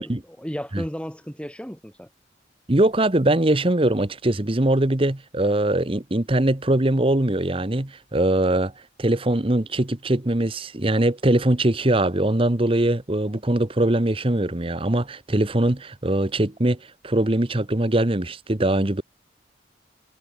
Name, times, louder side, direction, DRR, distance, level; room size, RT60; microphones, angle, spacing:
voice 1, 0.0-2.1, equal, 5° left, 3.0 m, -34 dB
voice 2, 2.7-8.7 9.0-19.0, right 1 dB, 30° right, 1.2 m, -22 dB
head